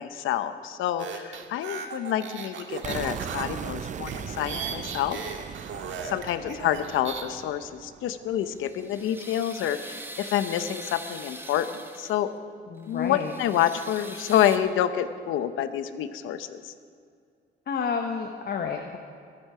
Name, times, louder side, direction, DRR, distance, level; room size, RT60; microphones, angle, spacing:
voice 1, 0.0-5.2 6.0-12.3 12.9-16.7, left 10 dB, 85° left, 11 dB, 0.8 m, -28 dB
sound 1, 1.0-7.2, right 6 dB, 75° right, 1.6 m, -37 dB
sound 2, 2.8-8.7, right 8 dB, 40° right, 0.4 m, -39 dB
sound 3, 8.3-12.3 12.8-14.6, right 1 dB, 10° right, 1.2 m, -43 dB
voice 2, 12.7-13.3 17.7-19.0, left 6 dB, 50° left, 4 dB, 1.0 m, -30 dB
22.5 x 8.7 x 4.9 m, 2.3 s
cardioid pair, 90°, 20 cm